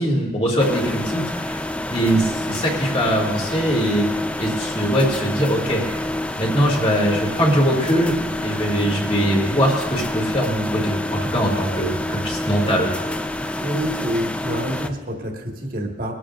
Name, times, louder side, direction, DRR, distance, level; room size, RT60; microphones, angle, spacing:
voice 1, 0.0-1.6 1.9-4.1 4.4-5.8 6.4-12.9, equal, 30° left, -1 dB, 2.4 m, -21 dB
sound 1, 0.6-14.9, left 1 dB, 5° left, 0.3 m, -28 dB
voice 2, 13.3-16.1, equal, 50° right, 1 dB, 1.6 m, -27 dB
21.5 x 12.5 x 2.5 m, 1.3 s
head